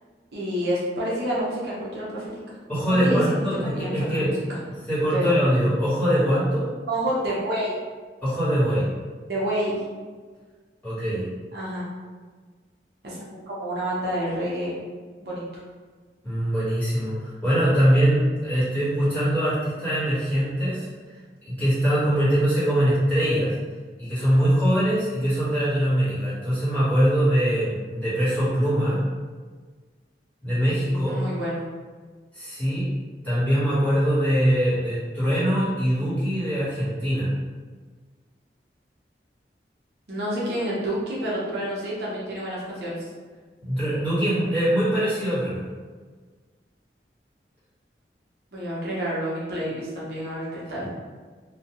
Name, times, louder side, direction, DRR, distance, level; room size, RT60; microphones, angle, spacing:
voice 1, 0.3-2.3 2.9-4.6 5.1-5.3 6.9-7.8 9.3-9.8 11.5-11.9 13.0-14.7 15.2-15.6 30.8-31.6 40.1-43.0 48.5-50.9, right 1 dB, 65° right, -6 dB, 0.7 m, -29 dB
voice 2, 2.7-6.7 8.2-8.9 10.8-11.3 16.2-20.9 21.4-23.5 24.0-29.0 30.4-31.2 32.3-32.9 33.2-37.3 43.6-45.6 50.8-50.9, equal, 10° left, -12 dB, 1.2 m, -22 dB
2.2 x 2.2 x 2.9 m, 1.5 s
head